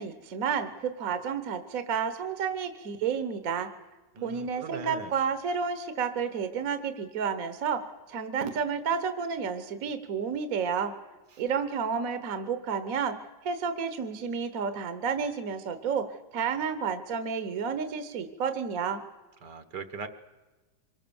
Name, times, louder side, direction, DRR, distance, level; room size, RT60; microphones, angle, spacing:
voice 1, 0.0-3.7 4.2-10.9 11.4-13.2 13.4-16.1 16.3-19.0, right 6 dB, 55° right, 9 dB, 1.5 m, -31 dB
voice 2, 4.2-5.1 19.4-20.1, right 5 dB, 70° right, 10 dB, 1.9 m, -39 dB
25.0 x 22.0 x 7.1 m, 1.2 s
omnidirectional pair, 1.9 m